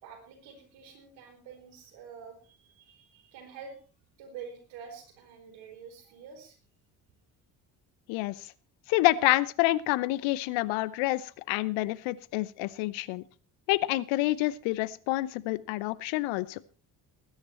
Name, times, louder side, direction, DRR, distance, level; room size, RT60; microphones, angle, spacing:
voice 1, 0.0-3.8 4.2-6.6, right 6 dB, 70° right, 4 dB, 4.8 m, -47 dB
voice 2, 8.9-13.2 13.7-16.6, left 18 dB, 70° left, 19 dB, 0.8 m, -28 dB
19.5 x 9.9 x 4.4 m, 0.37 s
hypercardioid pair, 45°, 49 cm